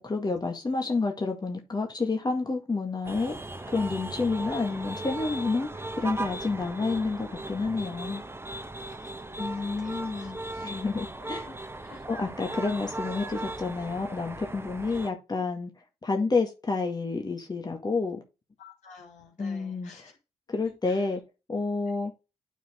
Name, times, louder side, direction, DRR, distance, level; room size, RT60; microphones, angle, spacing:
voice 1, 0.0-3.4 3.7-8.2 9.4-11.5 12.1-15.7 16.0-18.2 19.4-20.1 20.5-21.2 21.5-22.1, left 3 dB, 35° left, 1.9 m, -29 dB
sound 1, 3.0-15.1, right 2 dB, 20° right, 1.3 m, -37 dB
voice 2, 8.8-10.3 11.5-11.6 11.8-12.0 18.6-20.1 20.6-21.0, left 5 dB, 75° left, 3.7 m, -52 dB
9.2 x 4.4 x 3.6 m
supercardioid pair, 45°, 13 cm